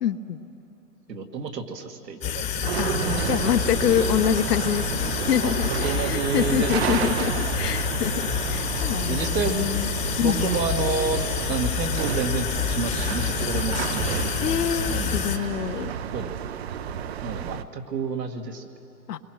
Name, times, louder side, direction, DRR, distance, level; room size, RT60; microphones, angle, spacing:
voice 1, 0.0-0.4 2.8-9.9 10.2-10.5 14.4-15.9 19.1-19.2, left 9 dB, 75° left, 10 dB, 1.2 m, -26 dB
voice 2, 1.1-2.9 5.4-5.5 5.8-7.0 9.1-9.6 10.2-11.2 11.5-14.3 14.9-15.2 16.1-16.3 17.2-18.7, right 5 dB, 85° right, 4 dB, 2.3 m, -29 dB
sound 1, 2.2-15.4, left 9 dB, 15° left, 1.0 m, -28 dB
sound 2, 2.6-17.6, right 9 dB, 40° right, 0.6 m, -31 dB
28.5 x 22.5 x 6.2 m, 2.8 s
hypercardioid pair, 150°, 48 cm